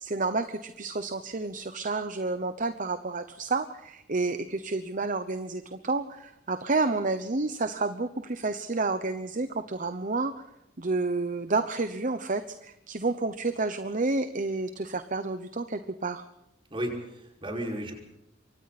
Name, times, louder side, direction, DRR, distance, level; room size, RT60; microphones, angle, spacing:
voice 1, 0.0-10.3 10.8-16.2, right 3 dB, 45° right, 10 dB, 0.9 m, -30 dB
voice 2, 16.7-17.9, right 1 dB, 30° right, 0 dB, 5.7 m, -34 dB
28.0 x 24.0 x 4.3 m, 0.83 s
head